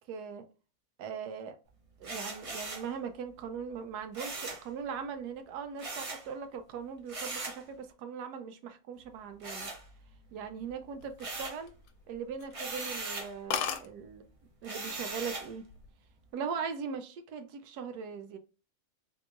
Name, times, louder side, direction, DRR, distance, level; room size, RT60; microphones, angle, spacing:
voice 1, 0.1-0.4 1.0-1.6 2.0-9.7 10.3-11.7 12.1-14.2 14.6-15.6 16.3-18.4, right 6 dB, 90° right, 1.2 m, -40 dB
sound 1, 2.0-2.9 4.1-4.7 5.8-6.3 7.1-7.6 9.4-10.3 10.7-11.7 12.5-13.3 14.6-15.5, right 3 dB, 45° right, 0.4 m, -39 dB
sound 2, 11.0-12.0 12.4-12.6 13.0-13.1 13.2-13.3 13.5-13.9 14.8-15.1 15.4-15.9, left 8 dB, 85° left, 1.1 m, -35 dB
3.7 x 2.9 x 2.4 m
omnidirectional pair, 1.6 m